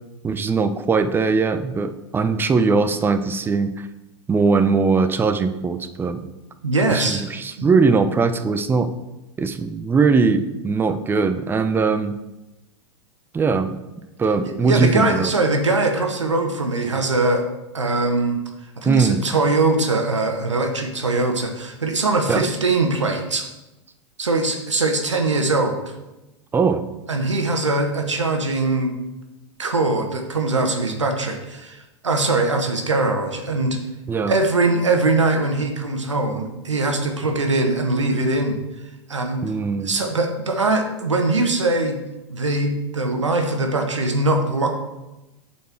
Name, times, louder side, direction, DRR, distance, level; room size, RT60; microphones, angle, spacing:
voice 1, 0.2-3.7 4.3-6.2 6.9-8.9 9.4-12.1 13.3-13.7 14.2-15.3 18.8-19.2 22.3-22.4 26.5-26.8 34.1-34.4 39.4-39.9, right 4 dB, 15° right, 10 dB, 0.5 m, -20 dB
voice 2, 6.6-7.2 7.6-7.7 14.4-17.4 17.7-18.4 18.8-23.5 24.2-25.9 27.1-28.9 29.6-33.8 34.3-38.6 39.1-39.4 39.8-42.0 42.3-44.7, right 2 dB, 90° right, 4 dB, 1.1 m, -21 dB
7.9 x 4.5 x 4.4 m, 1.0 s
hypercardioid pair, 100°, 15 cm